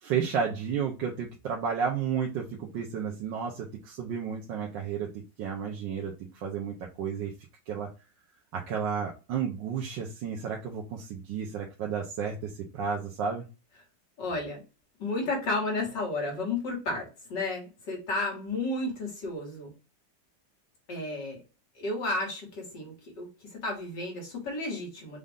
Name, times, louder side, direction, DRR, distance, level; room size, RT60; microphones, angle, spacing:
voice 1, 0.0-7.3 7.7-7.9 8.5-13.4, right 7 dB, 85° right, 0 dB, 1.5 m, -32 dB
voice 2, 14.2-14.6 15.0-19.7 20.9-21.4 21.7-25.2, left 2 dB, 70° left, -2 dB, 2.6 m, -32 dB
5.3 x 2.5 x 3.5 m, 0.31 s
omnidirectional pair, 2.0 m